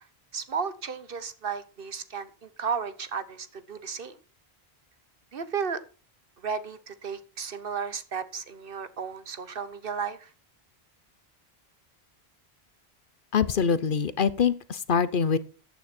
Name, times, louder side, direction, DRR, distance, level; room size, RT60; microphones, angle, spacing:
voice 1, 0.3-4.2 5.3-5.8 6.4-10.3, right 6 dB, 65° right, 13 dB, 1.2 m, -34 dB
voice 2, 13.3-15.4, left 6 dB, 60° left, 16 dB, 0.9 m, -24 dB
13.5 x 9.3 x 4.3 m, 0.35 s
omnidirectional pair, 1.0 m